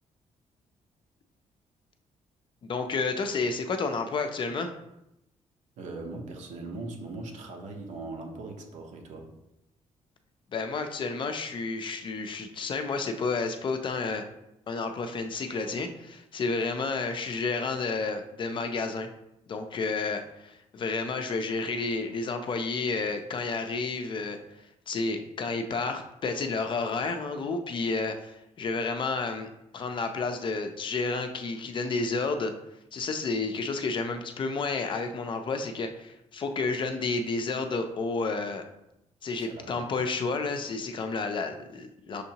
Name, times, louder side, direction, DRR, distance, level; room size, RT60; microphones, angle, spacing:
voice 1, 2.6-4.7 10.5-14.2 14.7-19.1 19.5-24.4 24.9-29.5 29.7-32.5 32.9-38.6 39.2-42.2, left 4 dB, 40° left, 6 dB, 0.4 m, -31 dB
voice 2, 5.8-9.3 39.4-39.9, right 2 dB, 75° right, 2 dB, 0.9 m, -40 dB
6.3 x 2.7 x 2.8 m, 0.86 s
cardioid pair, 135°, 13 cm